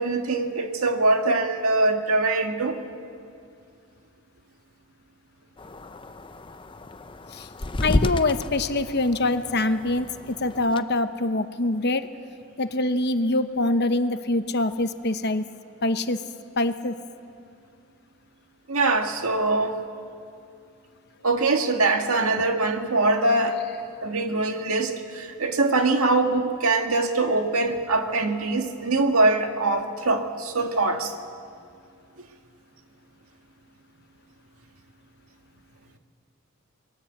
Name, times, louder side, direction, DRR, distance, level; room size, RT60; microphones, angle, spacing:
voice 1, 0.0-2.8 18.7-19.8 21.2-23.6 24.0-31.1, right 2 dB, 70° right, 5 dB, 1.9 m, -23 dB
sound 1, 5.6-10.8, left 1 dB, 20° left, 0.6 m, -31 dB
voice 2, 7.8-12.1 12.6-15.5 15.8-16.2 16.6-16.9, left 2 dB, 50° left, 9 dB, 1.0 m, -24 dB
29.0 x 21.5 x 8.1 m, 2.4 s
head